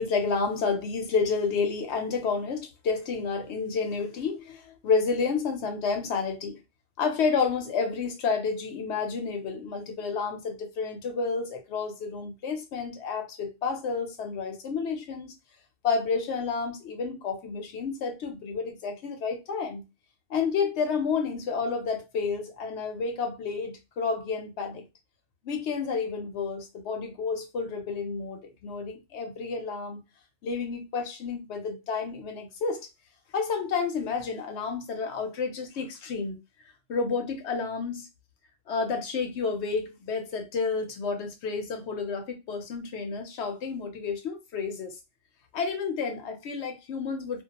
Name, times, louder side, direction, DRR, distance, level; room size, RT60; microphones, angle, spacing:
voice 1, 0.0-6.6 7.0-15.3 15.8-19.8 20.3-24.9 25.4-30.0 30.4-32.9 33.3-36.4 36.9-38.1 38.7-45.0 45.5-47.4, left 5 dB, 65° left, 0.8 m, -30 dB
2.3 x 2.2 x 2.8 m
omnidirectional pair, 1.3 m